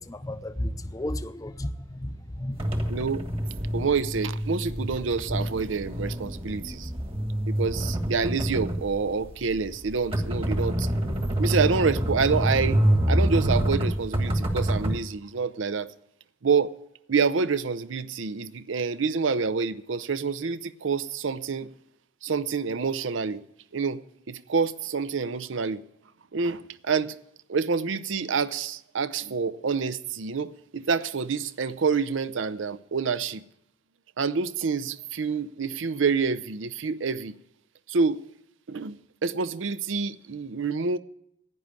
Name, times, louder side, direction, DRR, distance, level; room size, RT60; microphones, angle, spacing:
voice 1, 0.0-2.6, left 1 dB, 20° left, 0.6 m, -33 dB
sound 1, 2.6-15.0, right 1 dB, 30° right, 1.4 m, -27 dB
voice 2, 2.9-3.3 3.7-6.9 7.5-10.9 11.4-12.8 13.1-15.9 16.4-16.7 17.1-21.7 22.2-23.4 23.7-24.0 24.3-25.8 26.3-27.2 27.5-33.4 34.2-37.3 37.9-38.2 38.7-41.0, right 5 dB, 80° right, 0.6 m, -27 dB
11.0 x 9.6 x 8.8 m
head